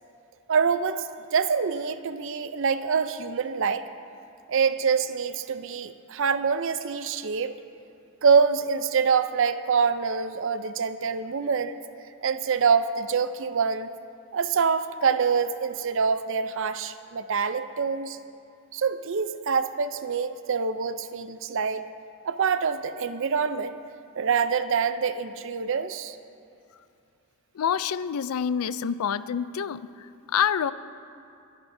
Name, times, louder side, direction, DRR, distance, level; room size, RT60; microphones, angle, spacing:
voice 1, 0.5-3.9 4.5-7.5 8.2-11.8 12.2-13.9 14.3-18.2 18.7-21.9 22.2-23.8 24.2-26.2, right 6 dB, 60° right, 12 dB, 0.5 m, -25 dB
voice 2, 27.5-30.7, left 8 dB, 85° left, 15 dB, 0.4 m, -27 dB
25.0 x 10.5 x 2.7 m, 2.6 s
head